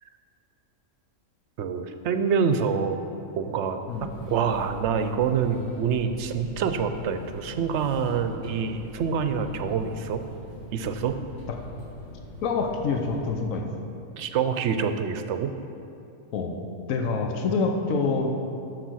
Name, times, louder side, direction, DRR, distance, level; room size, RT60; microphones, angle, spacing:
voice 1, 1.6-3.0 3.4-10.2 10.7-11.2 14.2-15.5, right 6 dB, 65° right, 8 dB, 0.8 m, -26 dB
sound 1, 3.9-13.3, left 1 dB, 55° left, 2.8 m, -43 dB
voice 2, 12.4-13.7 16.3-16.6 16.9-18.4, left 4 dB, 80° left, 3 dB, 1.2 m, -26 dB
8.1 x 6.6 x 6.2 m, 2.7 s
omnidirectional pair, 1.4 m